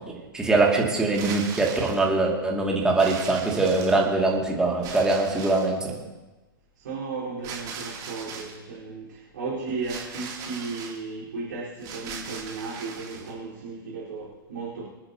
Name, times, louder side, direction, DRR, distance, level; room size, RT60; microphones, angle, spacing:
voice 1, 0.1-5.9, right 3 dB, 5° right, -2 dB, 2.4 m, -23 dB
sound 1, 1.0-2.1 3.0-4.2 4.8-5.8 7.4-8.6 9.8-11.0 11.8-13.3, right 5 dB, 30° right, 3.1 m, -39 dB
voice 2, 6.8-14.9, right 4 dB, 60° right, -9 dB, 4.5 m, -35 dB
26.5 x 9.5 x 3.0 m, 1.1 s
figure-of-eight pair, 105°, 12 cm